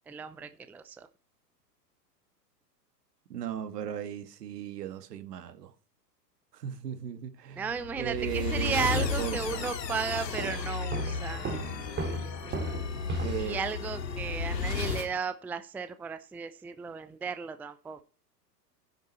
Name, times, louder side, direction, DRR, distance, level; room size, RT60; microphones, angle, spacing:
voice 1, 0.1-1.1 7.6-11.4 13.4-18.1, right 6 dB, 5° right, 0.5 m, -34 dB
voice 2, 3.3-5.7 6.5-9.8 13.2-13.6, right 10 dB, 70° right, 1.9 m, -37 dB
sound 1, 7.7-15.1, left 5 dB, 80° left, 2.5 m, -34 dB
Walk footsteps, 10.4-13.7, right 2 dB, 20° right, 2.6 m, -36 dB
11.5 x 10.5 x 4.3 m
hypercardioid pair, 115°, 49 cm